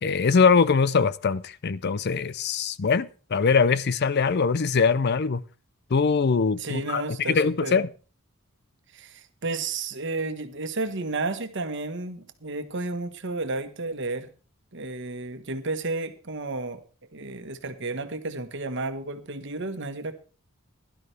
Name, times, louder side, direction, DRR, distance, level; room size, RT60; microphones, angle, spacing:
voice 1, 0.0-5.4 5.9-7.0 7.3-7.9, left 5 dB, 55° left, 0.5 m, -22 dB
voice 2, 6.6-7.8 8.9-14.3 14.7-16.8 17.1-20.1, right 3 dB, 60° right, 1.3 m, -32 dB
17.0 x 11.5 x 3.3 m
head